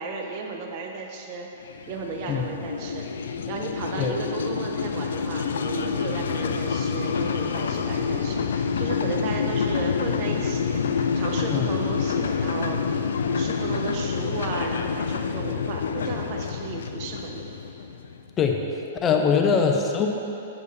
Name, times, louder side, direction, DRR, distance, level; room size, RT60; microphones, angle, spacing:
voice 1, 0.0-1.5 1.9-3.1 3.5-17.5 19.1-19.4, right 4 dB, 45° right, 2 dB, 1.1 m, -34 dB
sound 1, 1.6-18.3, left 6 dB, 75° left, 0.5 m, -27 dB
voice 2, 19.0-20.1, left 6 dB, 25° left, 2 dB, 0.8 m, -22 dB
8.4 x 8.3 x 4.1 m, 2.8 s
hypercardioid pair, 115°, 0 cm